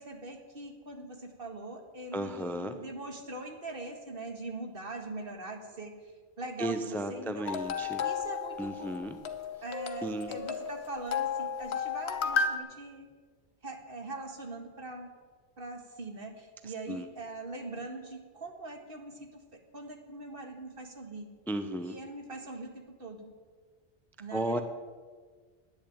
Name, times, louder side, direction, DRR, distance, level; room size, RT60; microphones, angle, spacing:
voice 1, 0.0-5.9 6.4-7.5 8.0-9.0 9.6-13.1 13.6-15.1 15.6-19.4 19.7-21.3 21.8-22.7 23.0-23.3 24.2-24.6, right 2 dB, 55° right, 4 dB, 2.0 m, -42 dB
voice 2, 2.1-2.8 6.6-8.0 8.6-9.2 10.0-10.3 16.6-17.1 21.5-22.0 24.3-24.6, right 1 dB, ahead, 8 dB, 0.6 m, -34 dB
sound 1, 7.4-12.6, left 6 dB, 80° left, 1.2 m, -33 dB
10.5 x 10.0 x 8.7 m, 1.5 s
omnidirectional pair, 1.1 m